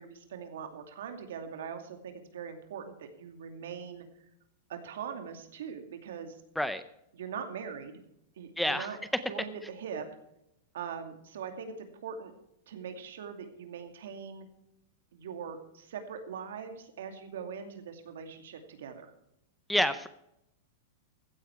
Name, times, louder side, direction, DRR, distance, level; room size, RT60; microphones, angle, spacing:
voice 1, 0.0-4.1 4.7-6.4 7.1-8.0 8.4-9.0 9.3-10.0 10.7-12.3 12.7-14.5 15.1-19.1, right 7 dB, 80° right, 6 dB, 2.5 m, -41 dB
voice 2, 8.6-8.9 19.7-20.1, left 1 dB, ahead, 12 dB, 0.5 m, -28 dB
15.0 x 9.7 x 4.7 m, 0.81 s
supercardioid pair, 170°, 0 cm